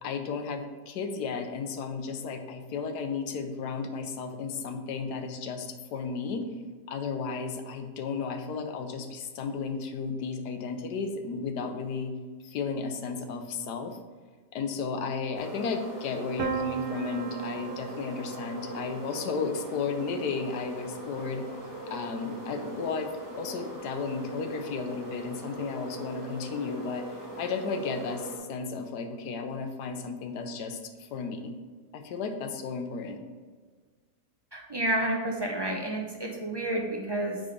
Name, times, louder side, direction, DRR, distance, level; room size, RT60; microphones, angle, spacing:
voice 1, 0.0-6.5 6.9-12.1 12.4-14.0 14.5-21.5 21.9-31.6 31.9-33.2, left 5 dB, 75° left, 6 dB, 1.3 m, -34 dB
sound 1, 15.3-28.4, right 1 dB, 10° right, 1.8 m, -41 dB
Piano, 16.4-22.2, right 7 dB, 65° right, 1.0 m, -39 dB
voice 2, 34.5-37.4, right 1 dB, 35° right, 0 dB, 0.3 m, -30 dB
9.0 x 3.9 x 5.0 m, 1.5 s
omnidirectional pair, 1.8 m